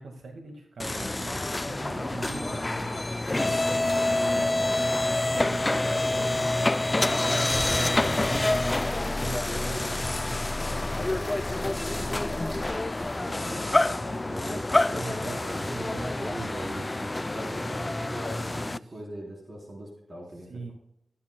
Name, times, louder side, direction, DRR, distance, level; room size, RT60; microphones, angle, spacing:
voice 1, 0.0-8.6 14.9-16.5 18.3-19.0 20.5-20.7, right 3 dB, 75° right, 2 dB, 1.7 m, -42 dB
sound 1, 0.8-18.8, left 2 dB, 25° left, 0.4 m, -27 dB
voice 2, 1.8-2.5 4.1-4.8 7.2-8.8 9.1-18.5 18.7-20.7, right 1 dB, 40° right, -3 dB, 3.6 m, -40 dB
Wind instrument woodwind instrument, 4.9-14.1, left 4 dB, 45° left, 1.5 m, -49 dB
20.0 x 9.7 x 2.2 m, 0.78 s
cardioid pair, 75°, 0 cm